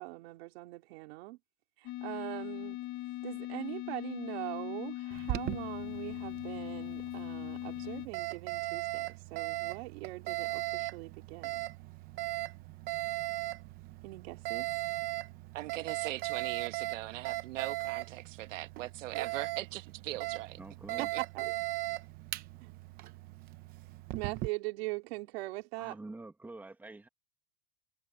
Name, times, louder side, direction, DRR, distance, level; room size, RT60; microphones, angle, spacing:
voice 1, 0.0-1.4 1.8-2.8 3.2-11.6 14.0-14.7 21.0-21.1 21.3-21.4 22.6-22.7 24.1-26.0, right 21 dB, 55° right, 3.0 m, -41 dB
sound 1, 1.8-8.1, left 16 dB, 30° left, 1.1 m, -40 dB
Alarm, 5.1-24.5, right 20 dB, 25° right, 0.7 m, -38 dB
voice 2, 15.5-20.6 20.9-21.0, right 16 dB, 85° right, 1.9 m, -40 dB
voice 3, 20.6-21.1 25.8-27.1, right 2 dB, 5° right, 1.7 m, -47 dB
supercardioid pair, 180°, 37 cm